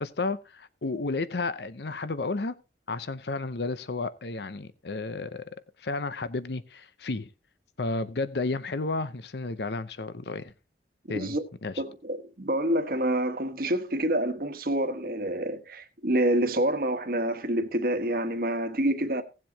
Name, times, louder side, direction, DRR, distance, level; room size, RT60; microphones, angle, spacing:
voice 1, 0.0-2.5 2.9-5.4 5.8-7.3 7.8-10.5 11.1-11.8, left 3 dB, 70° left, 0.7 m, -32 dB
voice 2, 11.8-19.2, right 1 dB, 55° right, 1.3 m, -27 dB
17.5 x 7.5 x 2.8 m
head